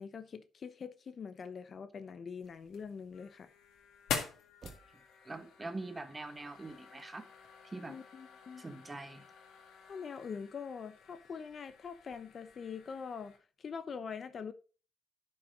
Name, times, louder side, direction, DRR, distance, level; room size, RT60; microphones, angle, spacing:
voice 1, 0.0-3.5 7.9-8.6 9.9-14.5, left 6 dB, 50° left, 0.8 m, -44 dB
sound 1, 2.4-13.4, left 7 dB, 85° left, 1.8 m, -46 dB
sound 2, 4.0-8.2 8.7-9.6, right 5 dB, 50° right, 1.5 m, -59 dB
voice 2, 5.2-7.3 7.6-7.9 8.6-9.3, right 2 dB, 20° right, 1.4 m, -43 dB
11.0 x 5.8 x 3.9 m
cardioid pair, 90°, 0 cm